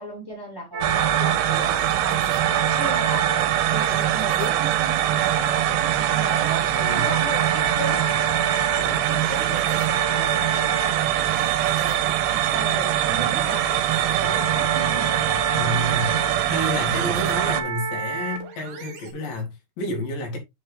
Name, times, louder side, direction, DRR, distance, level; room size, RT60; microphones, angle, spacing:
voice 1, 0.0-2.5 2.8-3.3 3.7-8.1 8.5-10.4 11.4-15.1 15.5-15.9 17.0-17.1, right 1 dB, 5° right, 2.7 m, -36 dB
sound 1, 0.7-19.1, right 4 dB, 65° right, 2.8 m, -32 dB
sound 2, 0.8-17.6, right 11 dB, 80° right, 2.4 m, -22 dB
voice 2, 6.7-7.2 8.8-9.5 12.3-12.8 15.5-16.2 16.5-20.4, left 1 dB, 75° left, 4.1 m, -31 dB
8.1 x 4.9 x 3.4 m
omnidirectional pair, 4.0 m